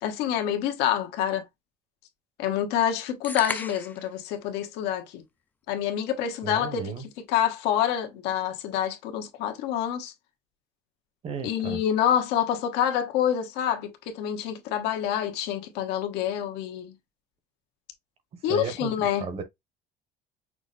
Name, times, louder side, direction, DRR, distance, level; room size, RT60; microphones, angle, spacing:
voice 1, 0.0-1.4 2.4-5.2 5.7-6.9 7.3-10.1 11.4-16.9 18.4-19.3, left 10 dB, 80° left, 1.2 m, -27 dB
sound 1, 3.2-4.1, left 3 dB, 10° left, 0.4 m, -34 dB
voice 2, 6.4-7.1 11.2-11.8 18.4-19.4, right 5 dB, 35° right, 1.1 m, -34 dB
6.0 x 2.0 x 4.0 m
cardioid pair, 150°, 17 cm